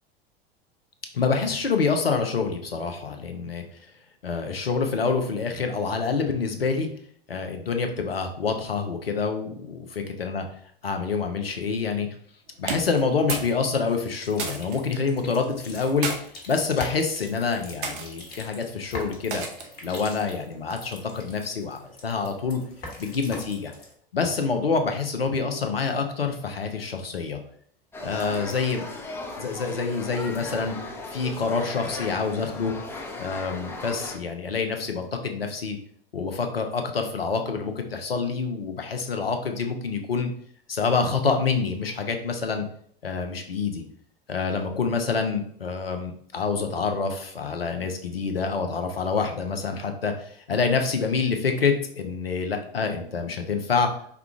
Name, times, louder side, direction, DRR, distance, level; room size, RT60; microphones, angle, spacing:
voice 1, 1.1-3.6 4.2-6.9 7.3-10.4 10.8-12.1 12.6-16.1 16.5-19.4 19.8-22.6 23.0-23.7 24.1-27.4 28.0-28.8 29.4-30.8 31.1-32.7 33.2-35.8 36.1-40.3 40.7-42.6 43.0-43.8 44.3-53.9, left 5 dB, 80° left, 5 dB, 0.7 m, -27 dB
sound 1, 12.6-13.6 13.8-14.8 15.7-16.2 17.0-17.2 17.8-18.1 19.3-19.8, right 4 dB, 60° right, 0.8 m, -32 dB
sound 2, 14.2-23.9, left 2 dB, 35° left, 1.4 m, -43 dB
sound 3, 27.9-34.2, left 2 dB, 10° left, 0.5 m, -37 dB
4.7 x 2.3 x 3.5 m, 0.62 s
figure-of-eight pair, 85°, 29 cm